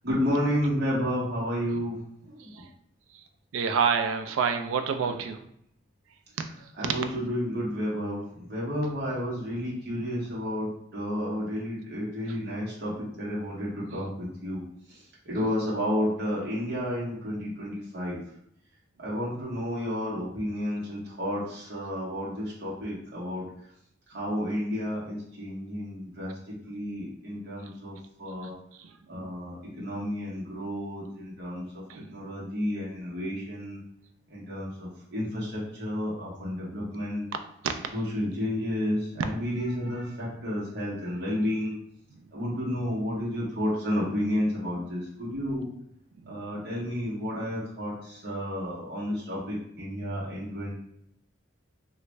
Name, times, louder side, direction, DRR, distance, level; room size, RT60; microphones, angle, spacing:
voice 1, 0.0-2.5 6.8-14.6 14.9-18.2 19.0-23.4 24.1-28.5 29.1-31.8 32.1-33.8 34.3-37.3 37.9-41.7 42.3-45.7 46.3-50.7, equal, 55° right, -7 dB, 1.1 m, -31 dB
voice 2, 3.5-5.4 6.4-7.0 12.3-12.4 13.8-14.1 28.4-28.5 28.8-29.0 31.9-32.2 37.6-37.7 46.3-46.4, right 6 dB, 85° right, 7 dB, 0.3 m, -29 dB
3.0 x 2.5 x 3.2 m, 0.71 s
head